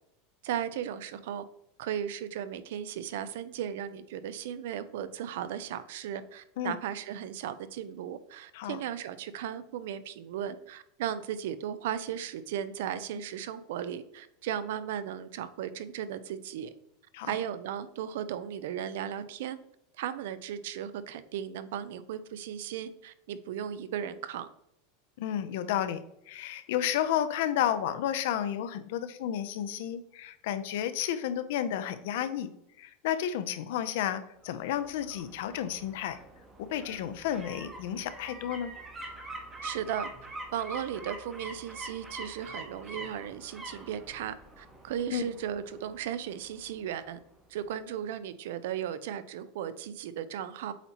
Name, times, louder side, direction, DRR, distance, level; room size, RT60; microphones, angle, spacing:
voice 1, 0.4-1.4 1.8-16.7 17.3-19.6 20.0-24.5 39.6-40.1 40.5-47.2 47.5-50.7, right 9 dB, 65° right, 13 dB, 0.5 m, -36 dB
voice 2, 25.2-26.0 26.3-32.5 32.8-36.2 36.6-38.7 45.1-45.3, left 10 dB, 60° left, 11 dB, 0.6 m, -32 dB
sound 1, 34.4-47.3 47.6-47.7, right 2 dB, 10° right, 0.9 m, -45 dB
8.1 x 4.2 x 2.9 m, 0.78 s
supercardioid pair, 175°, 0 cm